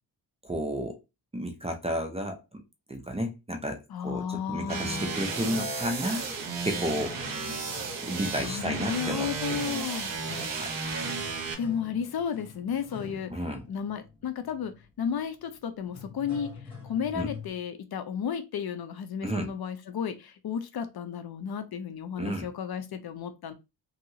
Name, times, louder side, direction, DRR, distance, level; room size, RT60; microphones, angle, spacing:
voice 1, 0.4-1.0 1.3-2.6 2.9-6.3 6.6-7.2 8.0-9.8 10.5-10.7 13.3-13.7 17.1-17.3 19.2-19.5 22.2-22.5, equal, 15° right, 0.5 m, -32 dB
voice 2, 3.9-5.2 8.4-10.2 10.8-13.3 13.7-23.5, left 7 dB, 60° left, 0.6 m, -33 dB
sound 1, 4.4-17.5, left 4 dB, 10° left, 1.4 m, -46 dB
sound 2, 4.7-11.5, right 4 dB, 50° right, 0.9 m, -33 dB
2.8 x 2.7 x 2.7 m
wide cardioid pair, 115°, 43 cm